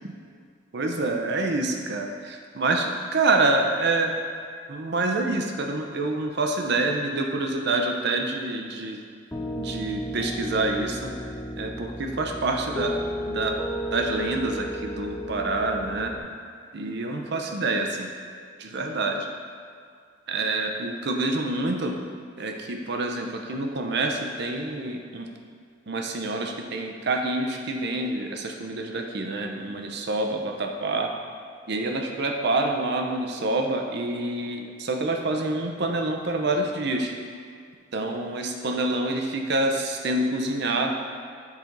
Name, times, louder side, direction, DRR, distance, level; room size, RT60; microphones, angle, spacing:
voice 1, 0.7-4.2 4.7-9.0 9.6-11.1 11.6-13.6 13.9-16.1 16.7-18.1 18.6-19.3 20.3-21.9 22.4-25.3 25.9-31.1 31.7-37.1 37.9-40.9, right 2 dB, 60° right, 3 dB, 0.6 m, -27 dB
Piano, 9.3-16.2, equal, 10° left, 0.4 m, -33 dB
7.2 x 4.4 x 3.9 m, 2.2 s
head